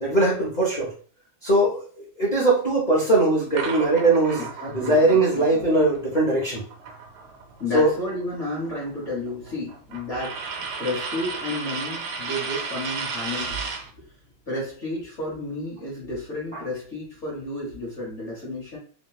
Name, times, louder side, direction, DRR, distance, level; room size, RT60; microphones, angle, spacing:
voice 1, 0.0-0.9 1.4-4.5 4.7-6.6 7.7-7.9, right 2 dB, 80° left, -6 dB, 0.4 m, -20 dB
sound 1, 3.6-7.6 7.9-13.9, right 5 dB, 85° right, 1.6 m, -34 dB
voice 2, 4.3-5.8 7.6-14.1 14.5-18.8, left 1 dB, 50° left, -5 dB, 0.9 m, -32 dB
3.1 x 2.8 x 2.3 m, 0.43 s
omnidirectional pair, 2.3 m